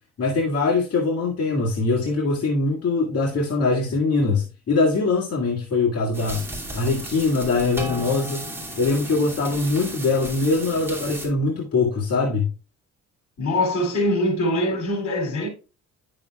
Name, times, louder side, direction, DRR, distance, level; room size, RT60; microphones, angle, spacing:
voice 1, 0.2-6.4 6.7-8.4 8.8-12.5, left 3 dB, 50° left, 1.9 m, -22 dB
sound 1, 6.1-11.3, right 1 dB, 5° right, 2.5 m, -34 dB
voice 2, 13.4-15.5, left 1 dB, 70° left, 3.1 m, -23 dB
9.5 x 6.8 x 2.3 m
cardioid pair, 90°, 30 cm